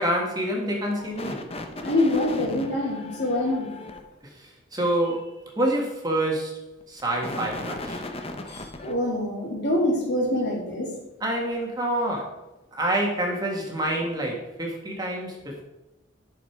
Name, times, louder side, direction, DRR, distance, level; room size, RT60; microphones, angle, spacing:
voice 1, 0.0-1.4 4.7-6.6 6.9-8.0 11.2-12.4 12.7-15.6, right 1 dB, 20° right, -1 dB, 1.7 m, -27 dB
sound 1, 0.8-4.0 6.8-8.9, left 2 dB, 30° left, 0.9 m, -36 dB
voice 2, 1.8-3.7 8.5-10.9, left 1 dB, 60° left, -3 dB, 3.1 m, -25 dB
11.0 x 6.6 x 4.6 m, 0.94 s
head